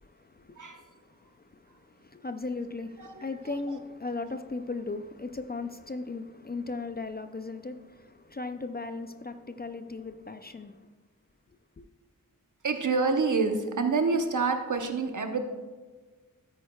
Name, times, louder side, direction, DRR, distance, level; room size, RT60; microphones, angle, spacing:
voice 1, 0.0-10.8 11.8-11.9, left 3 dB, 30° left, 0.4 m, -37 dB
voice 2, 3.0-3.5 12.6-15.4, right 4 dB, 60° right, 1.0 m, -27 dB
13.0 x 9.1 x 2.3 m
wide cardioid pair, 80°, 35 cm